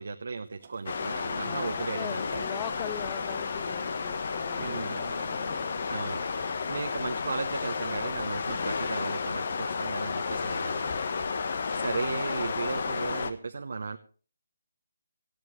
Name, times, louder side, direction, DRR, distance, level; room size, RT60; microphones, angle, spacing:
voice 1, 0.0-2.4 4.6-5.0 5.9-11.0 11.7-14.0, right 4 dB, 60° right, 6 dB, 1.0 m, -36 dB
sound 1, 0.6-7.4 8.0-8.1, right 6 dB, 40° right, 1.4 m, -50 dB
sound 2, 0.9-13.3, left 5 dB, 50° left, 1.3 m, -32 dB
voice 2, 1.4-5.7, left 15 dB, 20° left, 18 dB, 0.6 m, -41 dB
18.0 x 14.0 x 3.3 m, 0.40 s
figure-of-eight pair, 150°, 0 cm